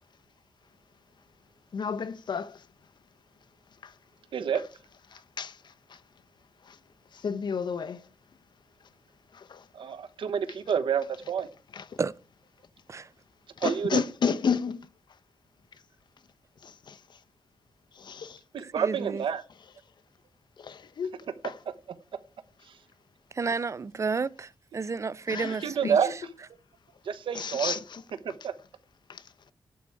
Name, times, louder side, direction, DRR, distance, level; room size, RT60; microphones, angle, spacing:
voice 1, 1.7-2.6 3.8-3.9 5.1-6.0 6.6-6.8 7.1-8.1 9.3-9.6 11.7-12.0 13.6-14.9 16.6-17.2 17.9-18.4 20.6-21.6 25.3-25.9 27.3-28.0 29.1-29.5, left 6 dB, 65° left, 0.8 m, -32 dB
voice 2, 9.7-11.5 13.6-14.0 18.5-19.4 22.7-22.8 25.6-26.1 27.0-27.8 28.4-28.5, right 7 dB, 85° right, 1.1 m, -28 dB
voice 3, 18.6-19.2 23.3-26.0, right 4 dB, 35° right, 0.6 m, -31 dB
12.0 x 4.8 x 8.4 m
wide cardioid pair, 100°, 8 cm